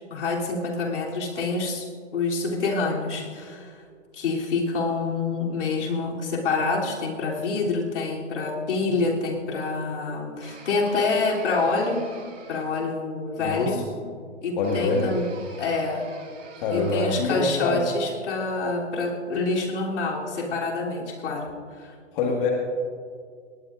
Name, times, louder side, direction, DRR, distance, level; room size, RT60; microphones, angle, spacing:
voice 1, 0.0-3.8 4.1-12.1 12.5-13.9 14.4-15.3 15.6-16.1 16.7-21.5 21.8-21.9, left 3 dB, 70° left, -2 dB, 3.3 m, -27 dB
sound 1, 10.4-13.0 14.6-17.3, right 4 dB, 85° right, 3.5 m, -46 dB
voice 2, 13.4-13.8 14.6-15.2 16.6-17.8 22.1-22.5, left 4 dB, 45° left, -1 dB, 1.9 m, -25 dB
20.0 x 18.5 x 2.6 m, 2.1 s
hypercardioid pair, 135°, 37 cm